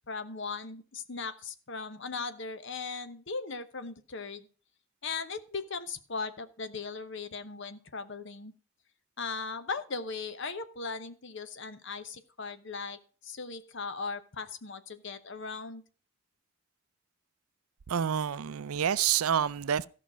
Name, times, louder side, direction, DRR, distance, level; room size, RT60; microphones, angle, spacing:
voice 1, 0.1-4.5 5.0-8.5 9.2-15.8, left 4 dB, 60° left, 0.9 m, -38 dB
voice 2, 17.9-19.9, right 8 dB, 85° right, 0.5 m, -28 dB
13.5 x 5.9 x 6.2 m
head